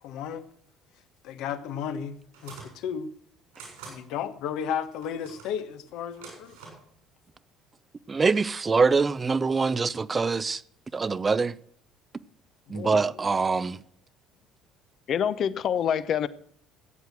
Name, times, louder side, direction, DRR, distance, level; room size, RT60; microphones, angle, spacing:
voice 1, 0.0-0.4 1.2-3.1 3.8-6.6 12.7-13.4, left 8 dB, 70° left, 1.2 m, -34 dB
sound 1, 2.3-2.7 3.5-4.0 5.0-5.5 6.1-6.8, right 4 dB, 85° right, 7.0 m, -45 dB
voice 2, 8.1-10.6 10.9-11.5 12.7-13.8, right 4 dB, 30° right, 0.6 m, -24 dB
voice 3, 15.1-16.3, left 8 dB, 55° left, 0.9 m, -25 dB
16.5 x 8.2 x 6.1 m
hypercardioid pair, 70°, 0 cm